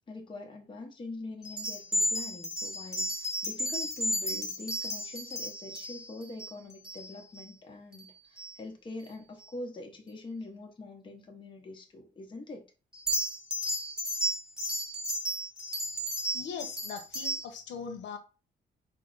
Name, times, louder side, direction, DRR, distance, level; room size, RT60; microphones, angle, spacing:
voice 1, 0.1-12.7, left 2 dB, 25° left, 2 dB, 0.9 m, -43 dB
sound 1, 1.4-7.4 7.9-8.1 8.4-8.5 12.9-17.4, equal, 5° right, 1.0 m, -33 dB
voice 2, 16.3-18.2, left 6 dB, 80° left, 7 dB, 0.8 m, -40 dB
5.5 x 2.1 x 3.9 m, 0.33 s
cardioid pair, 165°, 19 cm